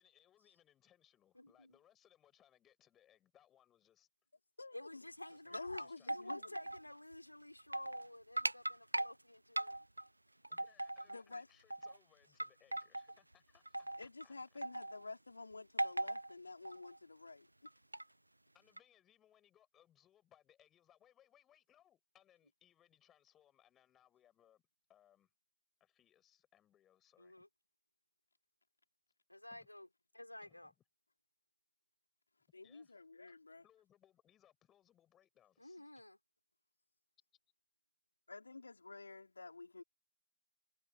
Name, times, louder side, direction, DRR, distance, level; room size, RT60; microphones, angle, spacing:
voice 1, 0.0-4.1 5.3-6.5 10.5-14.6 18.5-24.6 24.9-25.3 25.8-27.4 29.5-29.7 30.4-30.7 32.6-33.0 33.3-33.4 33.6-36.0, left 11 dB, 10° left, 6.0 m, -70 dB
voice 2, 1.4-1.7 4.7-9.7 27.2-27.5 29.3-29.9 30.1-30.7 35.6-36.2, left 1 dB, 85° left, 3.5 m, -52 dB
voice 3, 4.6-5.0 5.5-6.5 11.1-11.4 14.0-17.5 32.5-33.6 38.3-39.8, left 3 dB, 60° left, 4.4 m, -50 dB
sound 1, 5.3-6.8 7.1-7.2 7.6-8.1 8.4-9.1 9.6-10.1 10.4-11.4 11.7-12.0 12.4-13.1 13.7-14.2 14.6-15.0 15.8-16.3 16.6-17.0 17.7-18.0 18.8-18.9, right 1 dB, 80° right, 0.3 m, -39 dB
figure-of-eight pair, 160°, 0 cm